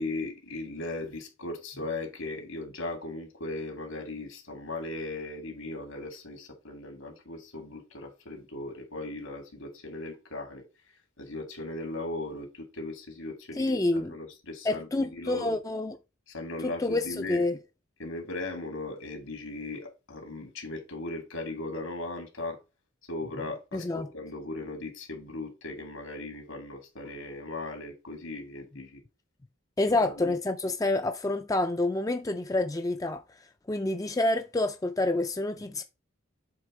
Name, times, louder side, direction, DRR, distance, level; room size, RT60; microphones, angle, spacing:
voice 1, 0.0-15.6 16.3-17.4 18.0-22.6 23.0-29.0 29.9-30.4, left 2 dB, 80° left, 2.5 m, -38 dB
voice 2, 13.6-14.1 14.7-16.0 16.6-17.6 23.7-24.1 29.8-33.2 33.7-35.8, left 2 dB, 15° left, 0.4 m, -28 dB
7.5 x 3.5 x 4.9 m
head